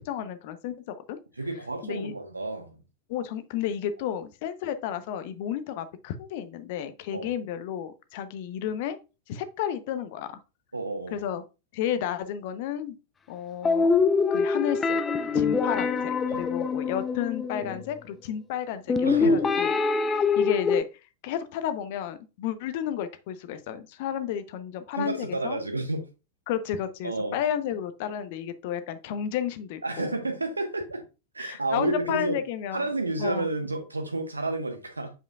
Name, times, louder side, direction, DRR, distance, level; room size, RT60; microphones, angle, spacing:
voice 1, 0.0-1.2 1.8-2.1 3.1-9.0 9.3-10.3 11.1-11.4 11.7-12.9 13.3-13.9 14.3-15.0 15.3-19.7 20.0-20.9 21.2-25.6 26.5-30.1 31.4-32.8 33.2-33.5, left 10 dB, 50° left, 0.7 m, -32 dB
voice 2, 1.4-2.8 7.1-7.3 10.7-11.2 15.3-15.4 16.3-16.4 19.0-19.4 25.0-26.0 27.0-27.4 29.8-31.0 31.3-32.4 32.7-35.1, right 2 dB, 80° right, 1.3 m, -30 dB
sound 1, 13.6-17.9 18.9-20.8, left 4 dB, 20° left, 0.4 m, -24 dB
7.9 x 5.1 x 2.4 m
figure-of-eight pair, 90°, 0 cm